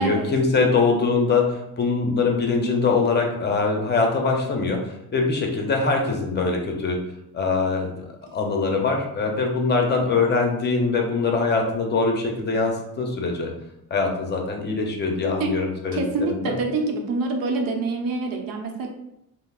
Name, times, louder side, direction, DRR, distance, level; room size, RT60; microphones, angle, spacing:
voice 1, 0.0-7.0 7.3-7.9 8.3-13.5 13.9-16.0 16.3-16.5, left 4 dB, 30° left, 1 dB, 0.6 m, -23 dB
voice 2, 15.9-18.9, right 3 dB, 80° right, 2 dB, 0.7 m, -26 dB
5.3 x 2.0 x 2.3 m, 0.81 s
cardioid pair, 135°, 35 cm